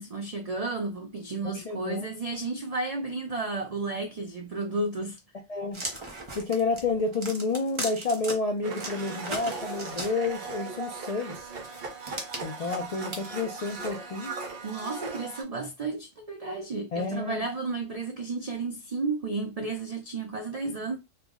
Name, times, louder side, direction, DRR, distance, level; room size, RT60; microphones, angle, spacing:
voice 1, 0.0-5.2 14.6-21.0, right 3 dB, 80° right, 0.3 m, -32 dB
voice 2, 1.4-2.1 5.5-5.8 6.4-11.5 12.4-14.4 16.9-17.4, left 3 dB, 65° left, 0.3 m, -30 dB
sound 1, 5.7-8.3 8.7-10.5 11.3-14.0, right 2 dB, 30° right, 0.6 m, -37 dB
Domestic sounds home sounds, 8.6-15.4, right 4 dB, 55° right, 0.8 m, -38 dB
3.3 x 2.0 x 3.5 m
omnidirectional pair, 1.3 m